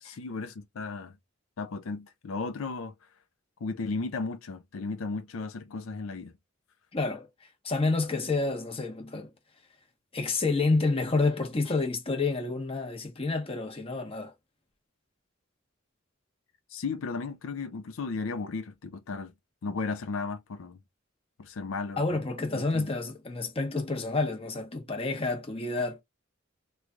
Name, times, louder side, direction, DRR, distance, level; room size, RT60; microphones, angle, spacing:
voice 1, 0.0-1.2 1.6-2.9 3.6-6.3 16.7-19.3 19.6-20.8 21.4-22.2 22.5-22.9, left 4 dB, 85° left, 0.5 m, -35 dB
voice 2, 6.9-7.3 7.6-9.3 10.1-14.3 22.0-26.0, left 3 dB, 30° left, 0.9 m, -29 dB
3.1 x 2.3 x 3.7 m
head